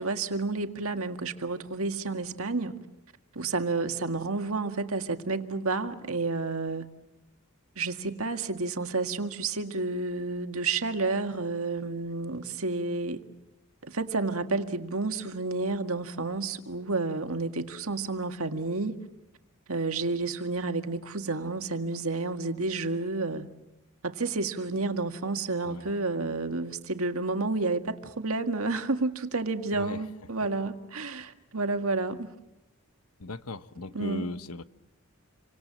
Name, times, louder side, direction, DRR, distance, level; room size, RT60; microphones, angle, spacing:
voice 1, 0.0-2.7 3.4-6.9 7.8-13.2 13.8-19.0 19.7-23.5 24.0-32.3 33.9-34.3, right 3 dB, 75° right, 1.9 m, -30 dB
voice 2, 29.7-30.0 33.2-34.6, left 2 dB, 80° left, 1.1 m, -37 dB
28.5 x 25.0 x 7.6 m
head